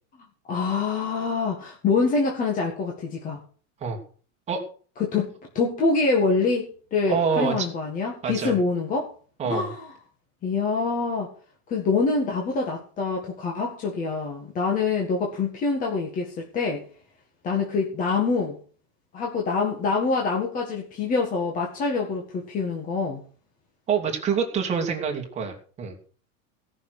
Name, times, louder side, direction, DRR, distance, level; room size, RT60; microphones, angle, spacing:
voice 1, 0.5-3.4 5.0-9.1 9.4-9.9 10.4-11.3 11.7-16.8 17.4-18.6 19.1-23.2, left 4 dB, 20° left, 1.9 m, -25 dB
voice 2, 7.1-7.7 8.2-8.5 9.4-9.7 23.9-26.0, right 6 dB, 20° right, 2.5 m, -26 dB
17.5 x 6.4 x 6.7 m
supercardioid pair, 175°, 36 cm